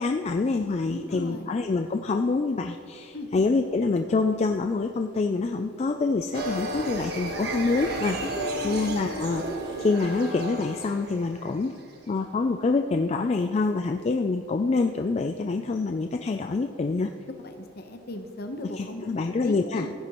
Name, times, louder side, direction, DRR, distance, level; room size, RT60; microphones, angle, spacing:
voice 1, 0.0-8.2 8.6-9.4 9.8-11.7 12.1-17.1 18.7-19.9, left 3 dB, 35° left, 6 dB, 0.3 m, -26 dB
voice 2, 0.9-1.5 3.1-3.3 8.2-8.9 17.4-19.0 19.4-19.9, left 1 dB, 50° left, 6 dB, 0.9 m, -37 dB
sound 1, 6.3-11.9, right 2 dB, 55° right, 1.5 m, -33 dB
15.5 x 9.3 x 3.0 m, 2.3 s
head